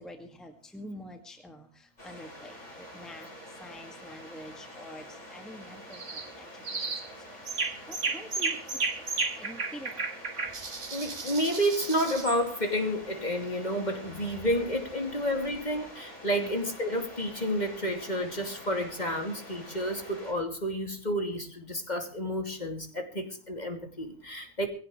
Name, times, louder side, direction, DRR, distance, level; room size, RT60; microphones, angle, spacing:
voice 1, 0.0-1.7 2.0-3.3 3.6-5.0 5.3-6.9 7.6-8.6 9.4-10.0 16.4-16.6, equal, ahead, 4 dB, 2.0 m, -46 dB
sound 1, 2.0-20.3, equal, 60° left, 7.3 m, -47 dB
sound 2, 5.9-6.3 6.6-7.1 7.5-12.4, right 4 dB, 55° right, 2.1 m, -33 dB
voice 2, 10.9-24.7, equal, 30° left, 4 dB, 2.8 m, -30 dB
21.0 x 17.0 x 3.3 m, 0.42 s
omnidirectional pair, 1.5 m